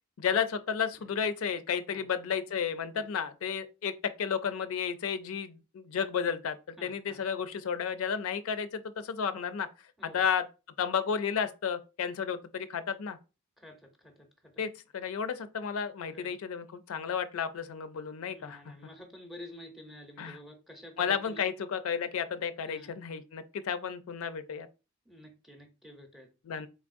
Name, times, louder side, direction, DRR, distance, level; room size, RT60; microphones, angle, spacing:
voice 1, 0.2-9.7 10.0-10.5 10.8-13.2 14.6-18.6 20.2-20.4 21.0-24.7 26.5-26.7, left 7 dB, 75° left, 0.4 m, -32 dB
voice 2, 6.8-7.2 10.0-10.3 13.6-14.6 16.0-16.3 18.3-21.5 22.6-22.9 25.1-26.3, left 1 dB, ahead, 0.7 m, -50 dB
4.1 x 3.5 x 2.5 m
head